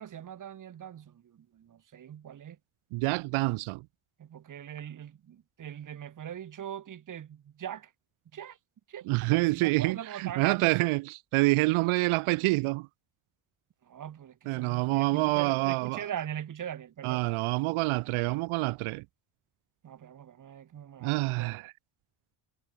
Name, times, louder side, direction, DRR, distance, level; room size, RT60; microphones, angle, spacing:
voice 1, 0.0-2.6 4.2-7.9 8.3-8.6 8.9-10.9 13.8-17.4 19.8-21.7, right 9 dB, 40° right, 1.2 m, -41 dB
voice 2, 2.9-3.8 9.1-12.9 14.5-16.0 17.0-19.0 21.0-21.7, right 23 dB, 90° right, 0.6 m, -27 dB
cardioid pair, 120°, 48 cm